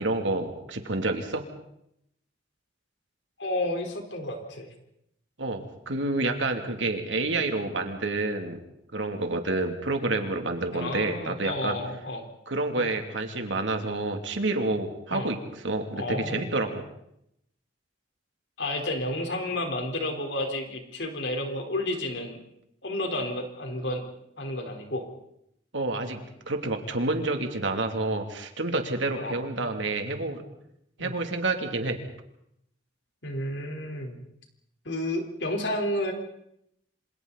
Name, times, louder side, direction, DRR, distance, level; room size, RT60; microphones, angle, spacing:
voice 1, 0.0-1.5 5.4-8.6 8.9-11.8 12.5-16.8 25.7-30.4 31.0-32.0, right 2 dB, 90° right, 4 dB, 2.9 m, -29 dB
voice 2, 3.4-4.7 10.7-12.3 12.7-12.9 15.1-15.3 16.0-16.5 18.6-22.4 22.8-24.0 24.4-25.0 29.2-29.4 31.0-31.2 33.2-34.2 34.8-36.1, left 1 dB, 75° left, 3 dB, 4.3 m, -31 dB
27.5 x 26.5 x 4.2 m, 0.77 s
head